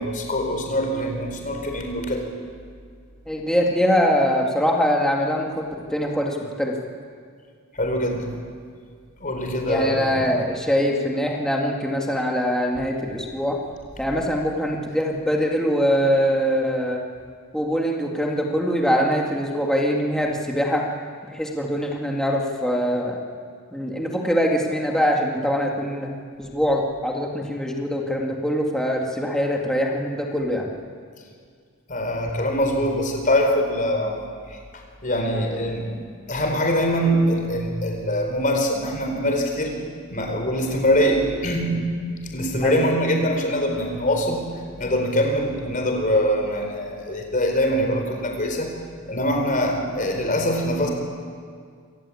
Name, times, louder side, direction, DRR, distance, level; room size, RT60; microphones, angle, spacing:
voice 1, 0.0-2.3 7.7-8.3 9.2-10.1 31.9-34.1 34.5-35.9 36.3-39.7 40.1-41.7 42.3-44.4 44.8-48.7 49.1-50.9, equal, 35° left, 3 dB, 4.4 m, -23 dB
voice 2, 3.3-6.8 9.7-13.6 14.0-17.0 17.5-20.9 21.3-23.2 23.7-26.1 26.4-30.7 42.6-42.9, equal, 5° left, -1 dB, 2.2 m, -23 dB
27.0 x 18.5 x 8.6 m, 2.1 s
head